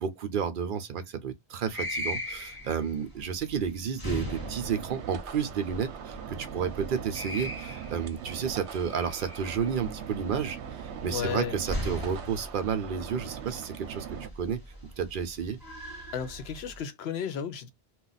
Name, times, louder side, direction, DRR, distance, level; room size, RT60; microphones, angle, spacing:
voice 1, 0.0-10.6 10.8-14.6 15.0-15.6, right 7 dB, 60° right, 0.7 m, -31 dB
sound 1, 1.6-16.8, left 1 dB, 20° left, 0.9 m, -40 dB
sound 2, 4.2-14.3, right 8 dB, 85° right, 0.8 m, -41 dB
voice 2, 11.1-11.6 16.1-17.7, left 8 dB, 75° left, 0.8 m, -33 dB
2.4 x 2.1 x 3.9 m
omnidirectional pair, 1.1 m